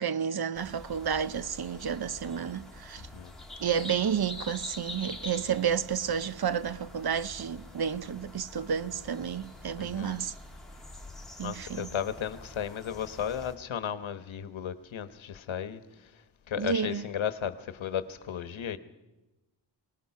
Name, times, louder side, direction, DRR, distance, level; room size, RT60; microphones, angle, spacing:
voice 1, 0.0-3.0 3.6-10.3 11.4-11.9 16.6-17.0, right 7 dB, 55° right, 0.8 m, -31 dB
sound 1, 0.5-13.6, left 2 dB, ahead, 2.6 m, -46 dB
voice 2, 3.0-3.3 9.8-10.2 11.4-18.8, left 9 dB, 85° left, 1.1 m, -35 dB
24.0 x 19.0 x 5.8 m
wide cardioid pair, 95°, 46 cm